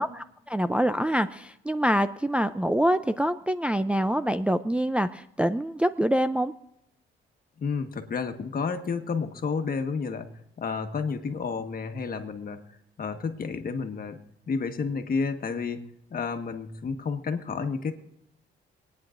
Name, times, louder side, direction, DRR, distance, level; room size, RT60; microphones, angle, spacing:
voice 1, 0.0-6.5, equal, 5° right, 8 dB, 0.4 m, -25 dB
voice 2, 7.6-10.2 10.6-14.2 14.5-15.8 16.1-17.9, left 5 dB, 45° left, 6 dB, 1.4 m, -31 dB
26.0 x 9.6 x 2.6 m, 0.83 s
cardioid pair, 90°, 20 cm